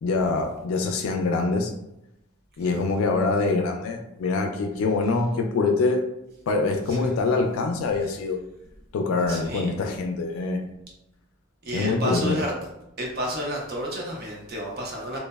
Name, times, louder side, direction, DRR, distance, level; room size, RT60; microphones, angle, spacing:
voice 1, 0.0-1.7 2.6-6.1 6.5-8.4 8.9-10.7 11.7-12.3, left 3 dB, 85° left, 3 dB, 0.3 m, -24 dB
voice 2, 9.3-9.7 11.6-12.5 13.0-15.2, equal, 50° right, -2 dB, 0.6 m, -31 dB
3.1 x 2.0 x 2.2 m, 0.88 s
head